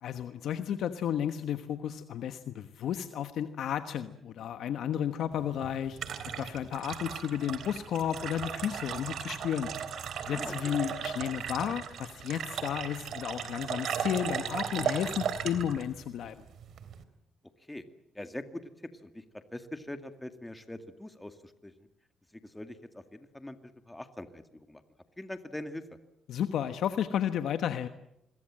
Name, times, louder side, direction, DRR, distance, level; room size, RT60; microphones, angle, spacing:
voice 1, 0.0-6.0 6.3-9.7 10.3-16.3 26.3-27.9, left 9 dB, 75° left, 9 dB, 1.2 m, -32 dB
sound 1, 5.3-17.0, right 7 dB, 65° right, 3.3 m, -37 dB
voice 2, 10.3-10.8 17.7-17.8 18.2-18.6 19.0-21.3 21.6-21.7 22.5-24.8 25.2-25.8, left 1 dB, 10° left, 8 dB, 2.2 m, -42 dB
27.5 x 22.5 x 7.7 m, 0.81 s
cardioid pair, 90°, 0 cm